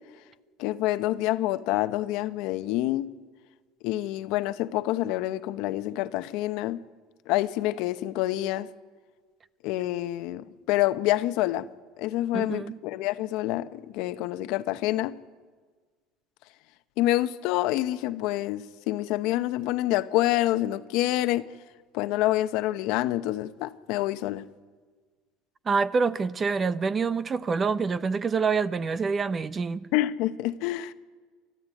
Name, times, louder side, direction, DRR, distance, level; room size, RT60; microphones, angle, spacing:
voice 1, 0.6-3.1 3.8-6.8 7.3-8.7 9.6-11.7 12.0-15.1 17.0-21.5 21.9-24.4 29.9-30.9, left 15 dB, 70° left, 0.9 m, -27 dB
voice 2, 12.3-12.8 25.7-29.8, right 5 dB, 30° right, 0.8 m, -26 dB
28.0 x 13.5 x 9.3 m
supercardioid pair, 110°, 0 cm